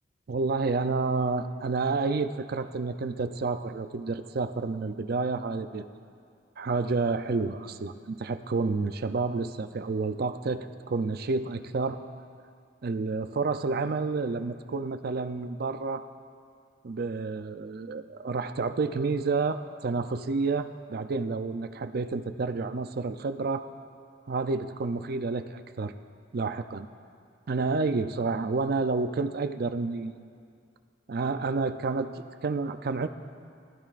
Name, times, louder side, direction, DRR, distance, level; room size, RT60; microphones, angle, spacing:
voice 1, 0.3-5.8 6.6-12.0 12.8-16.0 16.8-23.7 24.3-25.9 26.3-26.9 27.5-30.2 31.1-33.1, right 4 dB, 55° right, 9 dB, 0.5 m, -29 dB
20.0 x 12.5 x 2.5 m, 2.3 s
head